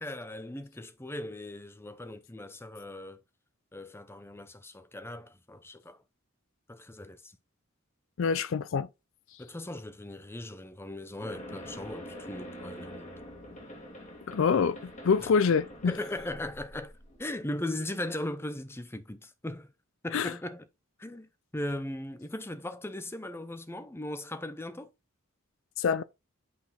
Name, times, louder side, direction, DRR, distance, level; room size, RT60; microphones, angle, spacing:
voice 1, 0.0-3.2 3.7-6.0 6.7-7.3 9.4-13.1 15.2-15.3 15.9-16.9 17.2-19.7 20.0-20.7 21.0-24.9, left 1 dB, 10° left, 0.7 m, -38 dB
voice 2, 8.2-8.9 14.3-14.8 15.0-15.9 20.1-20.3 25.8-26.0, left 6 dB, 60° left, 0.4 m, -25 dB
sound 1, 11.2-17.3, equal, 35° left, 1.9 m, -45 dB
8.5 x 3.9 x 4.2 m
head